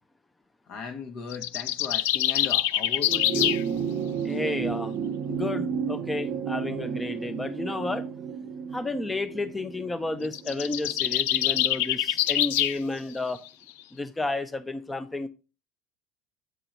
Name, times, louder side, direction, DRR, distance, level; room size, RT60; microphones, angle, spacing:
voice 1, 0.7-3.6, left 5 dB, 60° left, 1.3 m, -37 dB
sound 1, 1.3-3.6 10.2-12.8, left 14 dB, 75° left, 0.3 m, -25 dB
sound 2, 3.0-11.7 12.9-13.0, right 7 dB, 55° right, 0.6 m, -32 dB
voice 2, 4.2-5.0 5.3-8.1 8.7-13.4 13.9-15.3, left 2 dB, 15° left, 0.6 m, -31 dB
8.3 x 3.8 x 4.4 m
hypercardioid pair, 80°, 0 cm